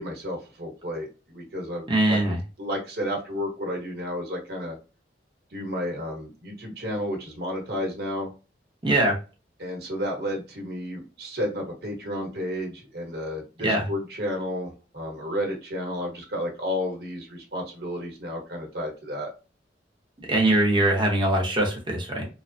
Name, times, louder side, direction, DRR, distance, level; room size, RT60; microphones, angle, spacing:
voice 1, 0.0-2.2 2.6-4.8 5.5-8.3 9.6-19.3, equal, 60° right, 0 dB, 1.0 m, -32 dB
voice 2, 1.9-2.4 8.8-9.2 13.6-13.9 20.2-22.3, right 1 dB, 25° right, 0 dB, 0.8 m, -22 dB
3.2 x 2.0 x 2.5 m, 0.32 s
head